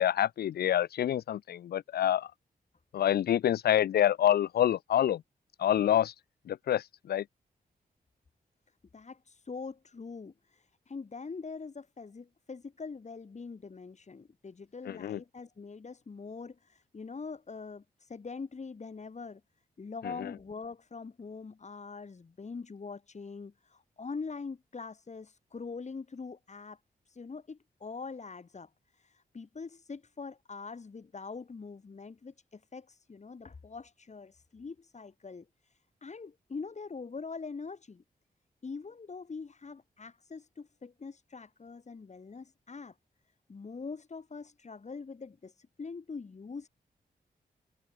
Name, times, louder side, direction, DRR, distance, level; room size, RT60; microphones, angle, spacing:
voice 1, 0.0-2.3 2.9-5.2 5.6-6.1 6.5-7.2 14.9-15.2 20.0-20.3, left 11 dB, 80° left, 0.4 m, -27 dB
voice 2, 8.9-19.4 19.8-26.8 27.1-38.0 38.6-42.9 43.5-46.7, left 4 dB, 45° left, 7.9 m, -43 dB
wide cardioid pair, 100°, 16 cm